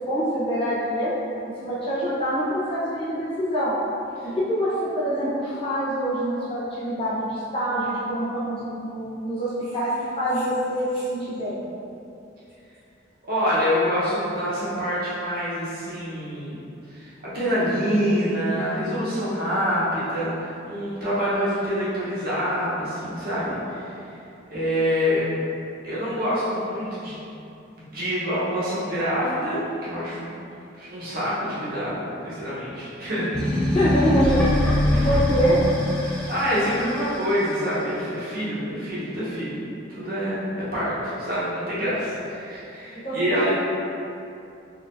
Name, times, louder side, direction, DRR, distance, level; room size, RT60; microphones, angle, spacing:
voice 1, 0.1-1.1 1.6-3.7 4.4-11.7 33.7-34.8 35.0-35.6 43.0-43.5, equal, 30° left, -10 dB, 0.7 m, -25 dB
voice 2, 13.3-16.5 16.9-24.0 24.5-25.2 25.8-27.1 27.8-30.3 30.7-33.3 34.9-35.1 36.0-39.5 39.9-43.5, equal, 50° right, -10 dB, 0.9 m, -26 dB
sound 1, 33.3-37.7, left 1 dB, 5° left, 0.4 m, -23 dB
3.6 x 2.5 x 2.5 m, 2.7 s
head